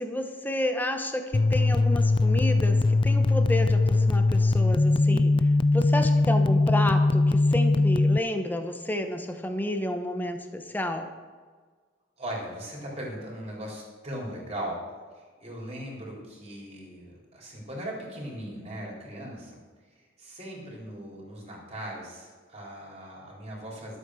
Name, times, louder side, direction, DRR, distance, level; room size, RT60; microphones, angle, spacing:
voice 1, 0.0-5.3 5.7-11.1, left 1 dB, 10° left, 6 dB, 1.0 m, -31 dB
sound 1, 1.3-8.2, left 2 dB, 25° left, 0.3 m, -21 dB
voice 2, 12.2-14.8 15.4-19.6 20.2-24.0, right 1 dB, 35° right, -3 dB, 3.8 m, -38 dB
12.0 x 8.3 x 6.3 m, 1.5 s
head